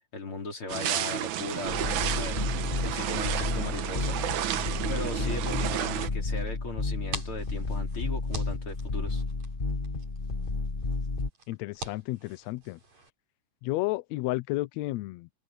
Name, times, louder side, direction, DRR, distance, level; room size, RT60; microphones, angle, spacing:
voice 1, 0.1-4.2 4.9-9.2, left 3 dB, 40° left, 5.4 m, -38 dB
sound 1, 0.7-6.1, right 12 dB, 70° right, 2.3 m, -31 dB
sound 2, 1.7-11.3, left 3 dB, 70° left, 0.5 m, -31 dB
sound 3, 6.8-13.1, right 3 dB, 55° right, 9.0 m, -45 dB
voice 2, 11.5-12.8 13.6-15.3, left 19 dB, 85° left, 1.5 m, -32 dB
open air
omnidirectional pair, 3.8 m